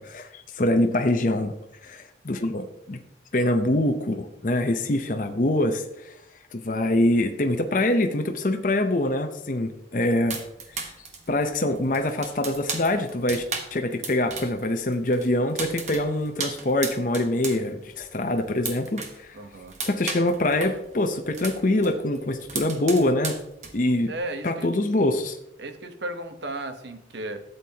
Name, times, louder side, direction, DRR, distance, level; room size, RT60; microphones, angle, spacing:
voice 1, 0.0-1.5 1.8-3.0 3.3-6.1 6.5-10.4 10.7-10.9 11.3-13.4 13.7-19.4 19.8-23.4 23.7-24.1 24.4-25.4, left 1 dB, 45° left, 6 dB, 0.7 m, -24 dB
sound 1, 10.3-14.7 14.9-17.6 17.9-19.2 19.5-21.9 22.2-24.0, right 5 dB, 40° right, 1.2 m, -34 dB
voice 2, 19.3-19.8 24.1-24.7 25.6-27.4, right 2 dB, 70° right, 7 dB, 1.1 m, -34 dB
12.5 x 8.0 x 2.9 m, 0.82 s
head